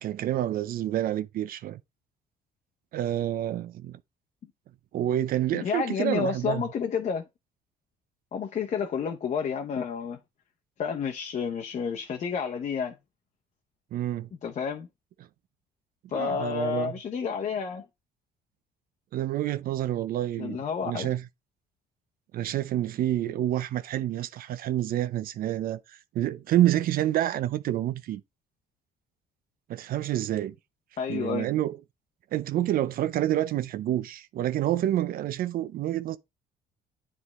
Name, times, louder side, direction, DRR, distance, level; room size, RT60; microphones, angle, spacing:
voice 1, 0.0-1.8 2.9-4.0 4.9-6.6 13.9-14.3 16.1-16.9 19.1-20.6 20.8-21.2 22.3-25.8 26.1-28.2 29.7-30.5 31.1-31.8 32.3-36.2, right 12 dB, 60° right, 0.5 m, -28 dB
voice 2, 5.5-7.2 8.3-10.2 10.8-13.0 14.4-14.9 16.1-17.9 20.4-21.1 31.0-31.5, left 6 dB, 45° left, 0.9 m, -30 dB
9.6 x 3.6 x 3.1 m
cardioid pair, 110°, 17 cm